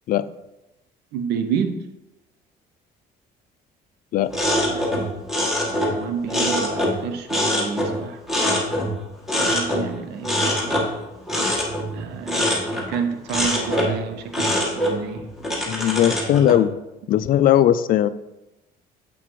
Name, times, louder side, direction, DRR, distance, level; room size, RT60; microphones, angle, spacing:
voice 1, 1.1-1.9 5.8-8.2 9.3-10.9 11.9-15.2, right 7 dB, 80° right, 8 dB, 0.6 m, -29 dB
sound 1, 4.3-7.0 7.3-9.0 9.3-9.9 10.2-13.0 13.3-14.0 14.3-16.6, left 1 dB, ahead, 1.5 m, -23 dB
voice 2, 15.7-16.7 17.1-18.1, left 11 dB, 55° left, 13 dB, 0.4 m, -18 dB
7.6 x 5.8 x 3.1 m, 0.96 s
cardioid pair, 110°, 17 cm